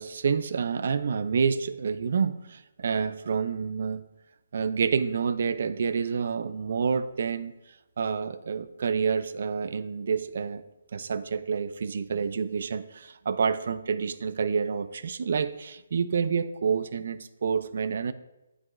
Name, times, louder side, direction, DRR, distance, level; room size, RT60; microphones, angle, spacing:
voice 1, 0.0-4.0 4.5-7.5 8.0-10.6 10.9-18.1, right 6 dB, 55° right, 13 dB, 0.4 m, -28 dB
9.7 x 4.7 x 2.4 m, 0.97 s
hypercardioid pair, 165°, 0 cm